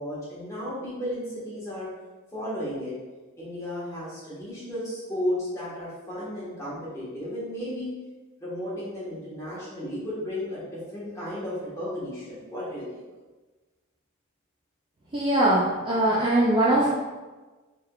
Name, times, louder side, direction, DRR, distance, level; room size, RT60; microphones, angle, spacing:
voice 1, 0.0-1.9 2.3-2.9 3.4-7.9 8.4-13.0, left 1 dB, 15° left, -9 dB, 1.2 m, -34 dB
voice 2, 15.1-16.9, right 1 dB, 25° right, -6 dB, 0.4 m, -21 dB
3.4 x 3.3 x 2.3 m, 1.3 s
head